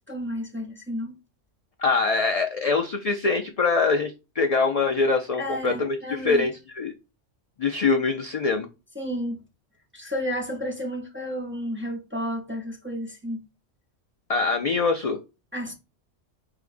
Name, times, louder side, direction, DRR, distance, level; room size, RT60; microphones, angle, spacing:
voice 1, 0.1-1.2 5.4-6.5 9.0-9.4 9.9-13.4 15.5-15.7, equal, 15° right, 0.6 m, -31 dB
voice 2, 1.8-6.9 7.6-8.7 14.3-15.2, left 4 dB, 60° left, 0.3 m, -24 dB
4.8 x 3.6 x 2.5 m
omnidirectional pair, 1.2 m